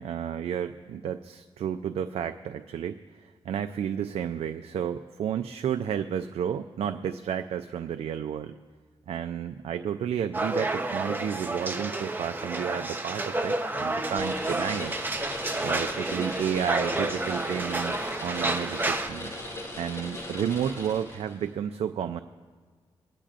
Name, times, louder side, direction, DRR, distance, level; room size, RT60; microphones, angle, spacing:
voice 1, 0.0-8.6 9.1-14.9 15.6-19.3 19.8-22.2, right 8 dB, 85° right, 8 dB, 0.4 m, -31 dB
sound 1, 10.3-19.1, right 2 dB, 20° right, 0.8 m, -30 dB
sound 2, 14.2-21.4, left 1 dB, 30° left, 3.7 m, -38 dB
24.5 x 10.0 x 2.5 m, 1.5 s
cardioid pair, 100°, 10 cm